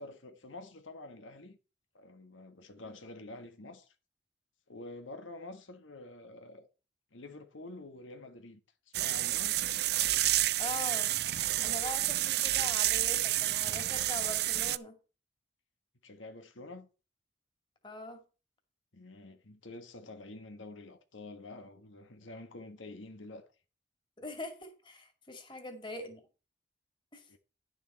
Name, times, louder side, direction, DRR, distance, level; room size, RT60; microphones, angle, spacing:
voice 1, 0.0-1.6 1.9-3.9 4.7-6.7 7.1-8.6 8.9-9.6 16.0-16.9 18.9-23.5 27.3-27.4, left 2 dB, 90° left, 1.5 m, -48 dB
sound 1, 8.9-14.8, right 14 dB, 55° right, 0.5 m, -30 dB
voice 2, 10.6-11.1 11.6-15.0 17.8-18.2 24.2-26.2 27.1-27.3, left 2 dB, 25° left, 2.3 m, -42 dB
11.0 x 7.1 x 4.4 m
head